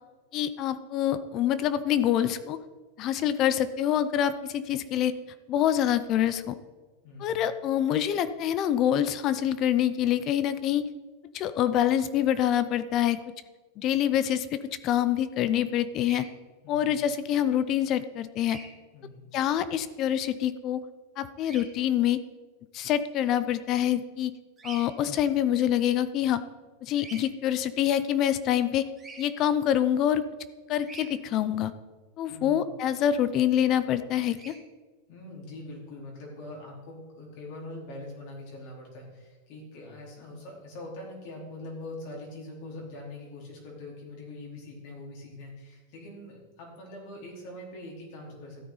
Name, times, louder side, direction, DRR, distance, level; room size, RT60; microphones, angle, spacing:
voice 1, 0.3-2.6 3.0-5.1 5.5-6.6 7.2-10.8 11.3-13.2 13.8-16.3 16.7-18.6 19.3-20.8 21.2-22.2 22.7-24.3 24.6-26.4 26.8-28.9 29.2-30.2 30.7-31.7 32.2-34.5, left 10 dB, 40° left, 14 dB, 0.6 m, -26 dB
voice 2, 7.0-7.4 16.6-16.9 18.9-19.2 32.3-32.7 35.1-48.7, left 1 dB, 55° left, -2 dB, 4.2 m, -43 dB
Bird vocalization bird call bird song, 16.0-16.2 18.4-18.7 21.4-21.6 24.6-24.9 26.9-27.2 29.0-29.2 30.8-31.1 34.3-34.6, right 3 dB, 15° right, 1.9 m, -44 dB
13.0 x 9.2 x 4.1 m, 1.3 s
supercardioid pair, 140°, 0 cm